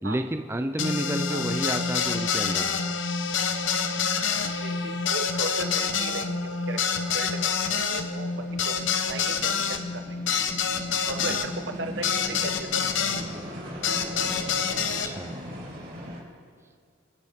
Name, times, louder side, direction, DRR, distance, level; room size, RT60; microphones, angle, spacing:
voice 1, 0.0-2.8 11.3-11.4 15.0-15.3, right 1 dB, 15° right, 6 dB, 0.5 m, -30 dB
sound 1, 0.8-13.2 13.8-15.1, left 6 dB, 80° left, 0.9 m, -27 dB
sound 2, 2.8-16.2, equal, 50° right, 3.4 m, -42 dB
voice 2, 4.4-6.8 7.1-10.2 11.1-12.8, right 2 dB, 65° right, 7 dB, 1.1 m, -37 dB
26.0 x 10.0 x 3.7 m, 2.2 s
head